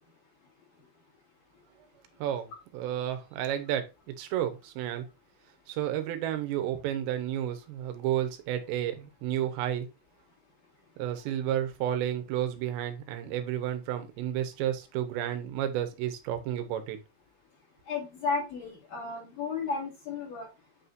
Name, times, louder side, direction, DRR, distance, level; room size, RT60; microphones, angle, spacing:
voice 1, 2.2-3.8 4.2-5.1 5.7-9.9 11.0-17.0, right 11 dB, 85° right, 8 dB, 3.2 m, -31 dB
voice 2, 17.8-20.5, left 4 dB, 45° left, -2 dB, 3.4 m, -33 dB
8.8 x 4.2 x 2.5 m, 0.26 s
omnidirectional pair, 4.9 m